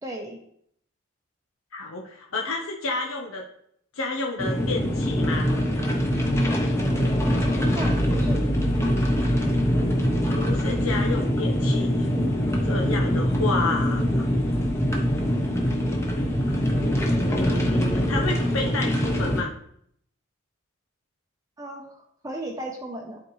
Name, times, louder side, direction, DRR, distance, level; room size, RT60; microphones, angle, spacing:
voice 1, 0.0-0.4 7.2-8.4 21.6-23.2, right 1 dB, 15° right, 1 dB, 0.7 m, -36 dB
voice 2, 1.7-3.4 3.9-5.5 10.3-12.1 12.6-14.3 17.3-19.5, left 3 dB, 85° left, 0 dB, 0.9 m, -30 dB
sound 1, 4.4-19.4, equal, 15° left, 0.9 m, -23 dB
11.0 x 4.2 x 3.1 m, 0.69 s
head